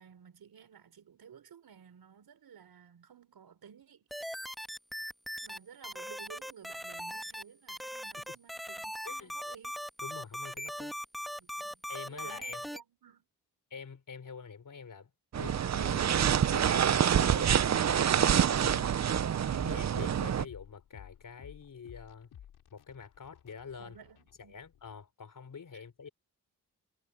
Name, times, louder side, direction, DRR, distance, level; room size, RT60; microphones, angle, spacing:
voice 1, 0.0-4.1 5.4-9.7 11.4-13.3 23.8-24.6, right 7 dB, 75° right, 5.1 m, -54 dB
sound 1, 4.1-5.6 5.8-7.4 7.7-12.8, equal, ahead, 1.5 m, -39 dB
voice 2, 9.0-9.4 10.0-11.0 11.9-12.6 13.7-17.9 18.5-19.0 19.5-22.3 22.7-24.0 24.4-26.1, left 6 dB, 55° left, 3.8 m, -47 dB
sound 2, 15.3-20.5, right 9 dB, 45° right, 0.7 m, -27 dB
sound 3, 15.4-25.0, left 10 dB, 90° left, 4.5 m, -53 dB
cardioid pair, 55°, 37 cm